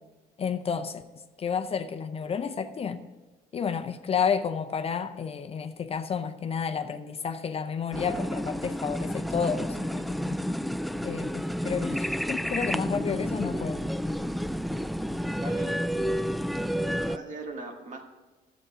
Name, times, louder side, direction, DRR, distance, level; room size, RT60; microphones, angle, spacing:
voice 1, 0.4-1.0 1.4-3.0 3.5-10.4 11.0-13.8, left 6 dB, 35° left, 8 dB, 0.6 m, -31 dB
sound 1, 7.9-17.2, equal, ahead, 0.3 m, -30 dB
voice 2, 15.4-15.8 16.9-18.0, right 2 dB, 45° right, 2 dB, 2.1 m, -39 dB
11.5 x 8.1 x 6.2 m, 1.2 s
cardioid pair, 110°, 17 cm